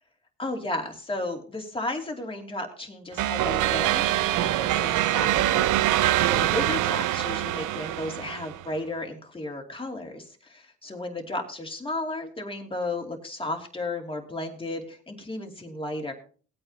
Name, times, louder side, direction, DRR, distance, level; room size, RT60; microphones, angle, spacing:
voice 1, 0.4-4.1 4.4-16.1, left 2 dB, 20° left, 2 dB, 2.7 m, -34 dB
sound 1, 3.2-8.7, right 14 dB, 85° right, 0.6 m, -24 dB
18.5 x 8.9 x 2.9 m, 0.40 s
cardioid pair, 90°, 30 cm